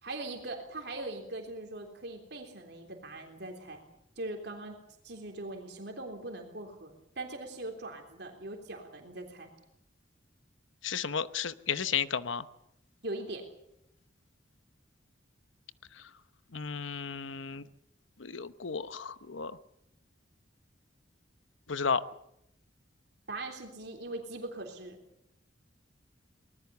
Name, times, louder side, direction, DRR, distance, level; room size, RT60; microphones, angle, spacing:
voice 1, 0.0-3.8 4.2-4.8 5.0-9.5 13.0-13.4 23.3-25.0, right 2 dB, 60° right, 3 dB, 3.5 m, -41 dB
voice 2, 10.8-12.4 16.5-17.6 18.2-19.5 21.7-22.0, left 6 dB, 85° left, 14 dB, 0.9 m, -33 dB
24.0 x 20.0 x 7.0 m, 0.80 s
head